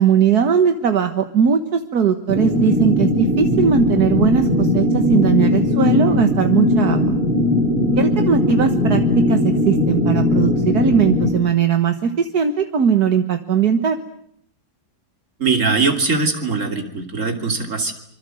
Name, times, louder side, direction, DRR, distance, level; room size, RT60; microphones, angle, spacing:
voice 1, 0.0-7.1 8.0-9.0 9.3-14.0, right 7 dB, 70° right, 7 dB, 1.9 m, -19 dB
sound 1, 2.3-11.3, left 2 dB, 30° right, 6.4 m, -18 dB
voice 2, 15.4-17.9, right 4 dB, 50° right, 5 dB, 3.4 m, -21 dB
26.0 x 26.0 x 7.8 m, 0.71 s
omnidirectional pair, 1.7 m